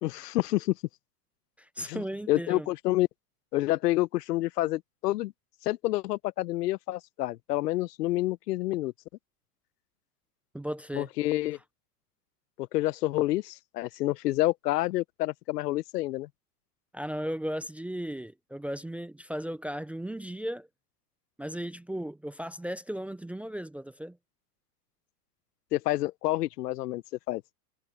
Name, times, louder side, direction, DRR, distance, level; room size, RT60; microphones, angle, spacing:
voice 1, 0.0-0.8 1.8-2.0 2.3-3.1 3.5-5.3 5.6-8.9 10.9-11.6 12.6-16.3 25.7-27.0 27.3-27.4, left 17 dB, 80° left, 0.8 m, -28 dB
voice 2, 1.6-2.7 10.5-11.1 16.9-20.7 21.4-24.2, equal, 5° right, 0.5 m, -36 dB
supercardioid pair, 135°, 47 cm